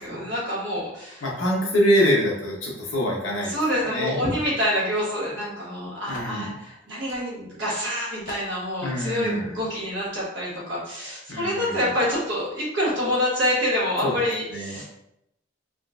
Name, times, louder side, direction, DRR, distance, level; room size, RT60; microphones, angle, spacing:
voice 1, 0.0-1.3 3.4-14.8, equal, 65° right, -6 dB, 1.3 m, -27 dB
voice 2, 1.2-4.2 6.1-6.5 8.8-9.6 11.3-11.8 14.0-14.2 14.5-14.8, equal, 70° left, -2 dB, 0.9 m, -25 dB
sound 1, 3.7-4.0 4.9-5.0 5.3-5.4 6.1-6.4 7.1-7.3 7.7-7.8 8.3-8.5, left 1 dB, 45° left, 0.5 m, -42 dB
3.7 x 2.4 x 2.4 m, 0.81 s
head